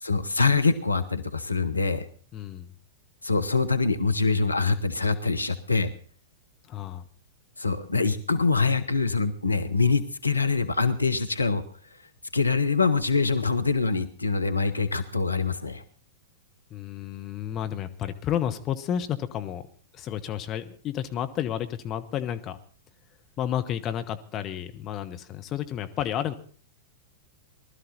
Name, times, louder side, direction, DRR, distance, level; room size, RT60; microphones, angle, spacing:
voice 1, 0.0-2.0 3.2-5.9 7.6-11.6 12.3-15.8, left 4 dB, 85° left, 10 dB, 1.0 m, -24 dB
voice 2, 2.3-2.7 6.7-7.0 16.7-19.6 19.9-22.6 23.4-26.4, left 10 dB, 30° left, 8 dB, 1.1 m, -31 dB
20.0 x 12.5 x 4.1 m, 0.43 s
figure-of-eight pair, 95°, 0 cm